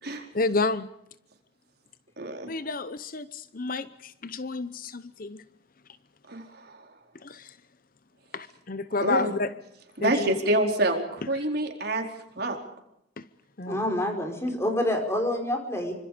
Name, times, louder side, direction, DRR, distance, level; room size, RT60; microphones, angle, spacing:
voice 1, 0.3-0.9 2.5-5.4 7.2-7.5 8.3-9.5 10.0-10.3 13.2-13.3 13.6-13.9, left 3 dB, 45° left, 0.8 m, -30 dB
voice 2, 2.2-2.5 6.3-6.7 9.0-9.4 10.0-12.0 12.4-12.6, right 1 dB, 55° right, 4.5 m, -27 dB
voice 3, 13.7-15.9, left 1 dB, 15° left, 5.1 m, -27 dB
27.0 x 25.5 x 5.1 m
head